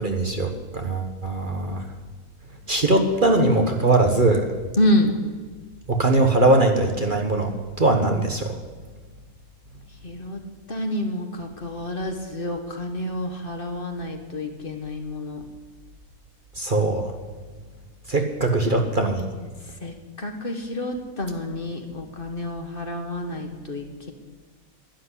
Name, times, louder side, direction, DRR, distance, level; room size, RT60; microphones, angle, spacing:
voice 1, 0.0-1.8 2.7-4.4 5.9-8.6 16.6-17.1 18.1-19.2, right 2 dB, 35° right, 4 dB, 1.3 m, -21 dB
voice 2, 4.8-5.1 10.0-10.4 10.7-15.4 19.8-24.1, left 1 dB, 40° left, 4 dB, 1.6 m, -28 dB
12.0 x 11.0 x 9.9 m, 1.4 s
omnidirectional pair, 1.5 m